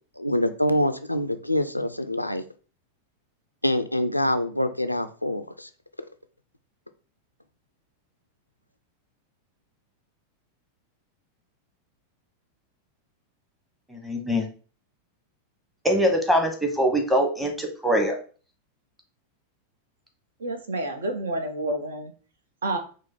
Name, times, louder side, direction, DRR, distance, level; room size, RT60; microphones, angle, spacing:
voice 1, 0.2-2.4 3.6-5.7, left 1 dB, 90° left, 9 dB, 0.3 m, -25 dB
voice 2, 13.9-14.5 15.8-18.2, equal, 5° right, 3 dB, 0.9 m, -23 dB
voice 3, 20.4-22.1 22.6-22.8, right 1 dB, 65° right, 6 dB, 0.7 m, -29 dB
4.8 x 2.0 x 4.3 m, 0.39 s
figure-of-eight pair, 90°, 0 cm